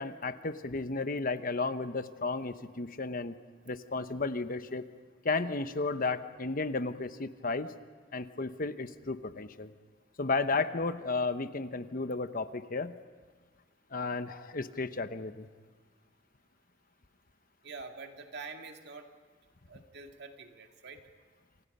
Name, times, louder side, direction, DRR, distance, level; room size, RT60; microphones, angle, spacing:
voice 1, 0.0-3.4 3.7-4.9 5.2-7.7 8.1-9.7 10.2-12.9 13.9-15.5, left 3 dB, 50° left, 11 dB, 1.0 m, -33 dB
voice 2, 17.6-19.1 19.7-21.0, right 4 dB, 65° right, 4 dB, 2.2 m, -46 dB
28.5 x 27.5 x 5.5 m, 1.5 s
head